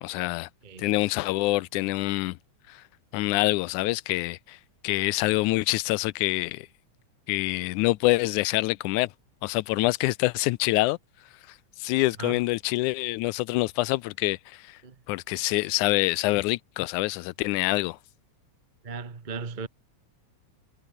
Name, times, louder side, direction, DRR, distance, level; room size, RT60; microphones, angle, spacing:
voice 1, 0.0-0.5 0.8-2.4 2.7-2.8 3.1-4.6 4.8-6.7 7.3-9.1 9.4-11.0 11.8-14.8 15.1-18.0, left 20 dB, 90° left, 2.0 m, -26 dB
voice 2, 18.8-19.7, right 4 dB, 30° right, 0.9 m, -36 dB
omnidirectional pair, 3.5 m